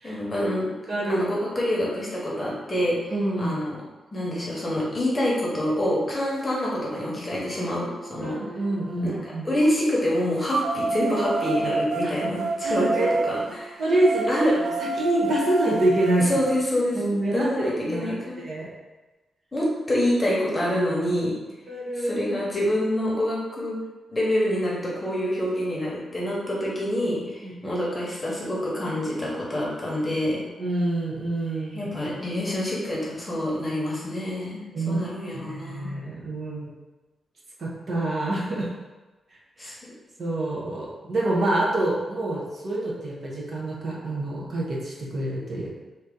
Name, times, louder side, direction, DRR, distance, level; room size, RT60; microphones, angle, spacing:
voice 1, 0.0-0.7 1.1-3.8 4.1-8.4 9.0-13.8 14.3-14.5 16.3-17.0 17.3-18.4 19.5-21.3 21.9-23.8 24.1-30.4 31.7-35.9 39.6-39.7, left 1 dB, 15° left, -5 dB, 1.1 m, -26 dB
voice 2, 0.9-1.2 3.1-3.5 8.2-9.5 12.6-13.1 13.8-14.4 15.0-16.3 16.9-18.1 18.4-18.7 21.7-22.2 27.4-27.7 30.6-31.9 34.7-35.0 35.5-36.7 37.6-38.7 39.6-39.7 40.2-45.7, right 1 dB, 50° right, -5 dB, 1.0 m, -26 dB
sound 1, 6.7-6.8 7.4-9.3 10.5-16.5, right 3 dB, 80° right, 0.4 m, -30 dB
3.9 x 2.8 x 3.8 m, 1.2 s
wide cardioid pair, 140°, 0 cm